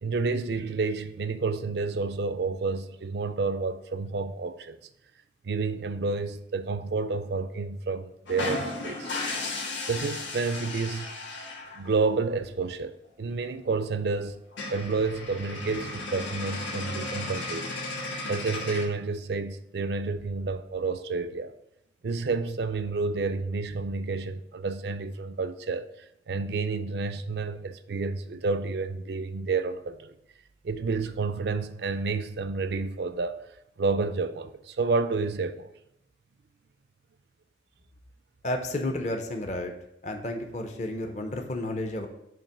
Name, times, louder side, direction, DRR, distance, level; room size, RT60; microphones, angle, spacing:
voice 1, 0.0-4.8 5.4-9.1 9.9-11.1 11.7-14.4 14.7-17.7 18.3-21.5 22.0-25.9 26.3-30.1 30.6-33.4 33.8-35.7, right 4 dB, 60° right, 0.4 m, -30 dB
sound 1, 8.3-11.9 13.4-13.5 13.8-13.9 14.2-14.3 14.5-18.8, left 2 dB, 85° left, 1.4 m, -35 dB
voice 2, 38.4-39.7 40.0-42.1, left 1 dB, 40° left, 0.6 m, -31 dB
7.1 x 2.9 x 6.0 m
head